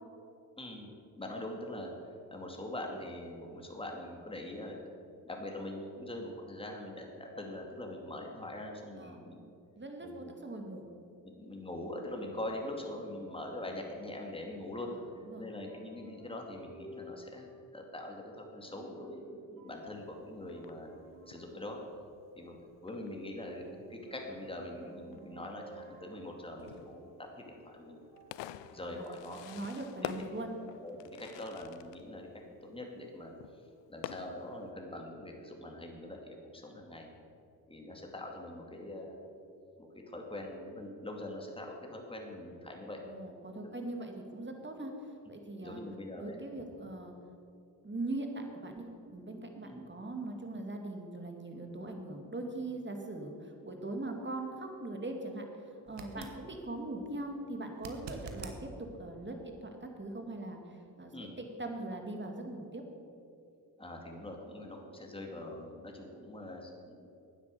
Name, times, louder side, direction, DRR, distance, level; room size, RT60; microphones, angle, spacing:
voice 1, 0.6-0.9 1.2-1.9 2.3-4.8 5.2-9.5 10.0-10.3 11.2-14.9 15.4-20.9 21.2-21.8 22.3-22.6 22.8-23.6 23.9-28.0 28.7-29.4 30.0-30.1 30.8-33.3 33.9-37.1 37.7-39.2 39.8-43.0 43.6-43.7 45.6-46.4 49.6-49.8 56.1-56.3 61.1-61.3 63.8-67.1, left 1 dB, 10° left, 1 dB, 2.4 m, -43 dB
voice 2, 9.8-10.9 14.9-15.5 28.9-29.1 29.4-30.5 43.0-44.9 45.3-45.8 46.2-47.1 47.8-48.8 49.1-58.7 59.0-62.8, right 2 dB, 25° right, 3 dB, 2.3 m, -41 dB
sound 1, 12.1-30.5, right 1 dB, 45° right, 3.4 m, -56 dB
Fireworks, 19.7-34.7, left 12 dB, 75° left, 0.5 m, -50 dB
sound 2, 55.9-56.4 57.7-58.6 61.6-61.7, right 4 dB, 75° right, 1.3 m, -45 dB
9.4 x 8.5 x 7.9 m, 2.6 s
supercardioid pair, 50°, 43 cm